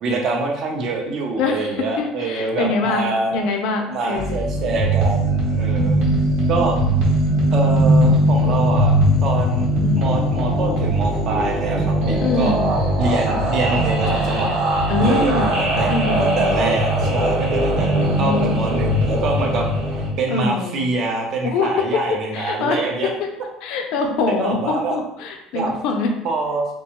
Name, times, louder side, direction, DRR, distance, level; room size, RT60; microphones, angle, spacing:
voice 1, 0.0-3.3 3.9-6.0 6.5-6.8 7.5-9.7 10.0-12.5 13.0-14.6 15.0-15.9 16.2-23.1 23.9-25.0 25.5-25.7 26.2-26.7, right 3 dB, 45° right, 1 dB, 0.5 m, -25 dB
voice 2, 1.4-4.4 9.8-10.0 12.2-12.7 14.9-15.5 15.9-16.4 17.9-18.6 20.3-20.8 21.4-22.8 23.2-23.3 23.6-26.1, left 4 dB, 70° left, 3 dB, 0.4 m, -24 dB
sound 1, 4.2-20.1, right 1 dB, 75° right, 1.0 m, -19 dB
2.7 x 2.2 x 2.9 m, 0.85 s
cardioid pair, 145°, 0 cm